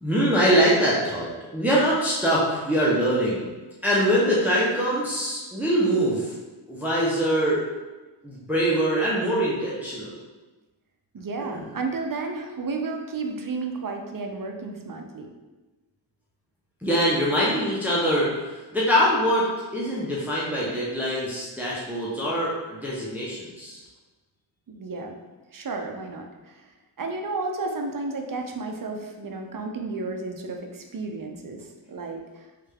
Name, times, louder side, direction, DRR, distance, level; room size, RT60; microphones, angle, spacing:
voice 1, 0.0-3.5 3.8-6.3 6.7-7.7 8.2-10.1 11.5-11.6 16.8-23.8, equal, 5° right, -7 dB, 0.7 m, -23 dB
voice 2, 11.1-15.3 24.7-25.2 25.5-26.6 27.0-32.5, right 3 dB, 45° right, 3 dB, 0.5 m, -32 dB
3.4 x 3.2 x 3.4 m, 1.2 s
wide cardioid pair, 100°, 47 cm